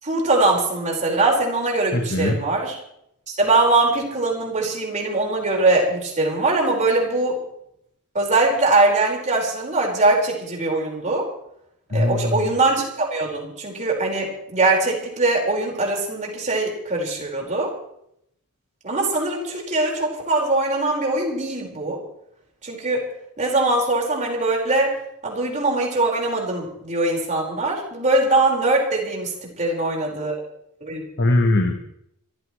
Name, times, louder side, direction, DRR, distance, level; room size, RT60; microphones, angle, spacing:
voice 1, 0.0-2.8 3.4-7.4 8.1-11.3 11.9-17.7 18.8-22.0 22.6-23.0 23.4-25.0 25.2-29.3 29.6-30.4 30.8-31.0, right 2 dB, 35° right, -1 dB, 5.0 m, -21 dB
voice 2, 1.9-2.3 11.9-12.3 31.2-31.7, left 1 dB, 50° left, 4 dB, 1.5 m, -20 dB
27.0 x 15.0 x 3.2 m, 0.73 s
head